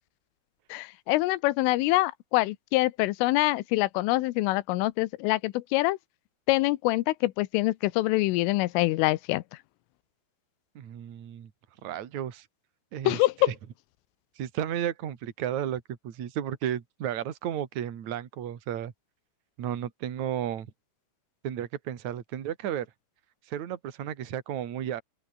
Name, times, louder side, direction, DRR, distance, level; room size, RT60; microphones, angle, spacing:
voice 1, 0.7-6.0 6.5-9.4 13.0-13.5, left 19 dB, 90° left, 3.3 m, -25 dB
voice 2, 10.7-11.5 11.8-12.5 12.9-13.2 13.5-13.6 14.4-18.9 19.6-20.7 21.4-22.9 23.5-25.0, right 10 dB, 50° right, 2.7 m, -33 dB
open air
omnidirectional pair, 5.8 m